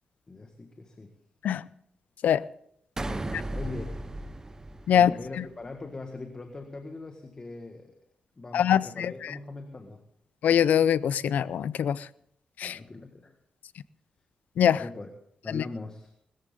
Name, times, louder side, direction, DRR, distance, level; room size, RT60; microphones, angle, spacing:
voice 1, 0.3-1.1 3.0-4.0 4.9-8.0 8.4-10.0 12.6-13.3 14.7-15.1 15.4-16.1, left 3 dB, 30° left, 4 dB, 1.7 m, -41 dB
sound 1, 3.0-5.5, right 2 dB, 20° right, 0.7 m, -35 dB
voice 2, 8.5-9.1 10.4-12.0 12.6-12.8 14.6-14.8 15.5-15.6, left 9 dB, 90° left, 18 dB, 0.5 m, -23 dB
20.5 x 14.0 x 3.8 m, 0.69 s
wide cardioid pair, 110°, 3 cm